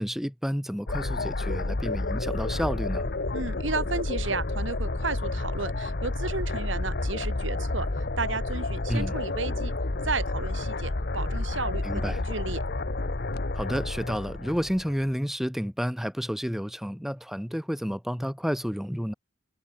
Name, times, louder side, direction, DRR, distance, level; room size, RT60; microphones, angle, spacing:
voice 1, 0.0-3.1 8.9-9.2 11.8-12.2 13.5-19.1, equal, ahead, 2.6 m, -30 dB
sound 1, 0.9-15.1, left 2 dB, 55° left, 1.2 m, -30 dB
voice 2, 3.3-7.9 8.2-9.7 10.0-12.6, right 3 dB, 80° right, 3.3 m, -33 dB
head